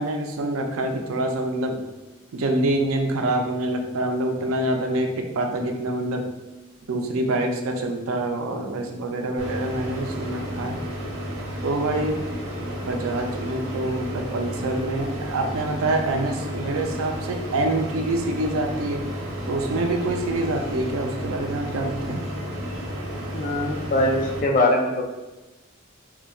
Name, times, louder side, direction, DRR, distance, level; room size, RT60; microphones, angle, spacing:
voice 1, 0.0-1.8 2.3-6.3 6.9-10.8 11.6-12.2 12.8-19.0 19.5-22.2, right 2 dB, 90° right, 4 dB, 0.4 m, -26 dB
sound 1, 9.4-24.4, equal, 70° right, 0.8 m, -32 dB
voice 2, 23.3-25.0, left 1 dB, 40° left, 0 dB, 0.4 m, -22 dB
4.0 x 2.2 x 2.3 m, 1.1 s
head